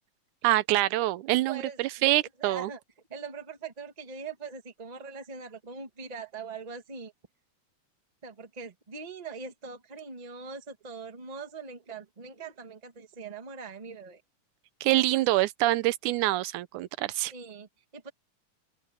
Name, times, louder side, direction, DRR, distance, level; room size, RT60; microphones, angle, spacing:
voice 1, 0.4-2.7 14.8-17.3, right 17 dB, 75° right, 2.1 m, -25 dB
voice 2, 1.5-2.1 2.4-2.8 3.1-7.1 8.2-14.2 14.9-15.2 17.3-18.1, right 5 dB, 25° right, 0.8 m, -42 dB
open air
omnidirectional pair, 3.7 m